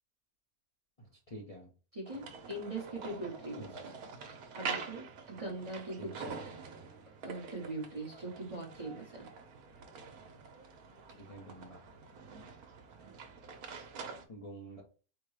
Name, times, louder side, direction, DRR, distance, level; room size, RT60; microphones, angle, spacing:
voice 1, 1.0-1.7 3.6-3.7 6.0-6.1 11.2-11.8 14.3-14.8, right 1 dB, 30° left, -3 dB, 0.7 m, -48 dB
voice 2, 1.9-3.9 4.5-6.6 7.2-9.3 13.0-13.1, right 2 dB, 25° right, -2 dB, 0.9 m, -42 dB
sound 1, 2.1-14.2, right 5 dB, 75° right, 1.2 m, -46 dB
4.6 x 2.2 x 4.8 m, 0.36 s
omnidirectional pair, 1.6 m